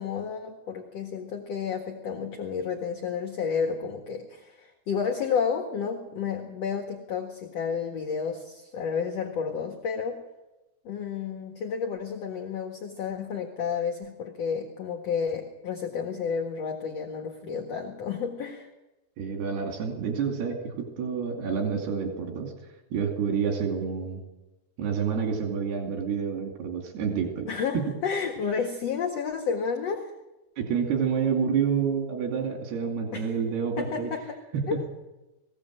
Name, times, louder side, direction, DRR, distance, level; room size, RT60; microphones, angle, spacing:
voice 1, 0.0-10.2 10.8-18.7 27.5-30.1 33.1-33.3 33.8-34.4 34.7-34.8, left 6 dB, 50° left, 3 dB, 2.4 m, -31 dB
voice 2, 19.2-22.5 22.9-24.2 24.8-27.5 27.8-27.9 30.6-34.1 34.5-34.8, right 6 dB, 90° right, 2 dB, 4.6 m, -28 dB
21.0 x 17.0 x 7.6 m, 1.0 s
omnidirectional pair, 4.5 m